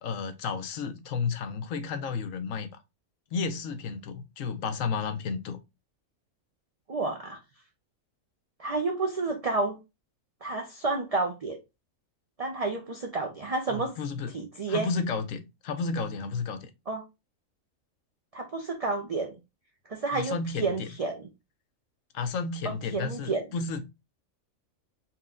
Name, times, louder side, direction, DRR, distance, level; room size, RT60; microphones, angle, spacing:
voice 1, 0.0-2.8 3.3-5.6 13.7-14.3 14.7-16.7 20.1-20.9 22.1-23.8, left 5 dB, 75° left, 1.0 m, -32 dB
voice 2, 6.9-7.4 8.6-9.8 10.4-11.6 12.4-13.9 14.3-14.9 16.9-17.0 18.3-19.3 19.9-21.3 22.6-23.4, right 3 dB, 45° right, 0.4 m, -30 dB
4.3 x 2.2 x 3.6 m
omnidirectional pair, 1.4 m